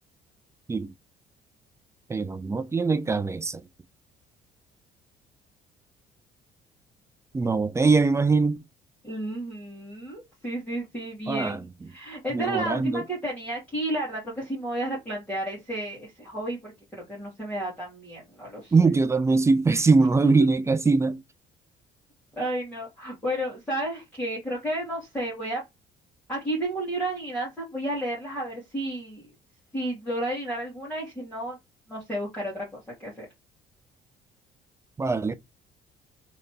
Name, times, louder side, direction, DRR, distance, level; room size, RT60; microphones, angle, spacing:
voice 1, 2.1-3.6 7.3-8.6 11.3-11.6 12.3-13.0 18.7-21.2 35.0-35.3, right 4 dB, 15° right, 0.3 m, -22 dB
voice 2, 9.0-18.7 22.3-25.6 26.3-29.3 29.7-31.6 31.9-33.2, right 1 dB, 10° left, 1.7 m, -32 dB
3.2 x 2.9 x 2.8 m
cardioid pair, 110°, 17 cm